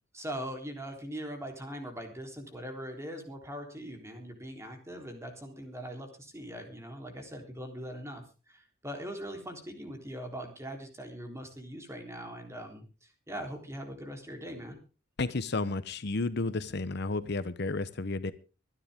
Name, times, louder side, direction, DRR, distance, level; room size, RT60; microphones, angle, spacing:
voice 1, 0.1-14.8, equal, 15° right, 4 dB, 3.6 m, -41 dB
voice 2, 15.2-18.3, left 3 dB, 60° left, 13 dB, 0.9 m, -32 dB
25.0 x 9.8 x 3.6 m, 0.34 s
head